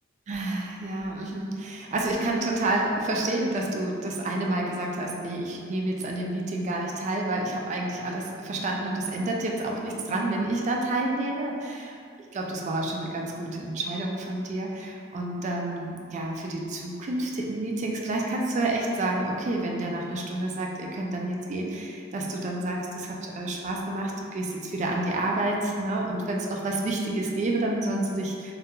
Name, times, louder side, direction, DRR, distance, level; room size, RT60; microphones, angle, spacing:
voice 1, 0.3-12.0 12.3-28.5, right 2 dB, 40° right, 0 dB, 0.3 m, -29 dB
2.3 x 2.2 x 2.8 m, 2.2 s
head